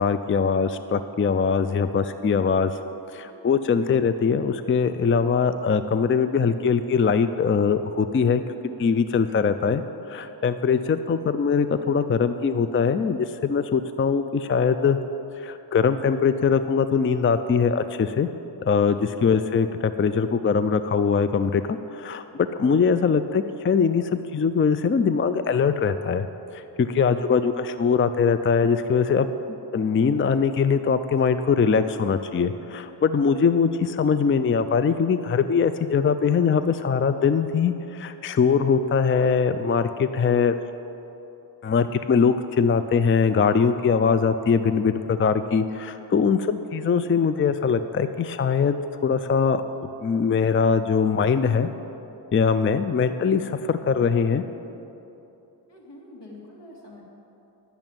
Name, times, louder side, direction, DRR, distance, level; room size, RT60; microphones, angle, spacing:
voice 1, 0.0-2.7 3.1-8.4 8.8-15.0 15.4-18.3 18.7-26.3 26.5-29.3 29.7-40.6 41.6-49.6 50.0-51.7 52.3-54.4, left 6 dB, 30° left, 11 dB, 0.4 m, -22 dB
voice 2, 3.3-3.6 18.7-19.1 33.2-33.4 55.7-57.0, left 1 dB, 80° left, -2 dB, 2.5 m, -47 dB
10.5 x 7.0 x 9.0 m, 3.0 s
wide cardioid pair, 90°, 42 cm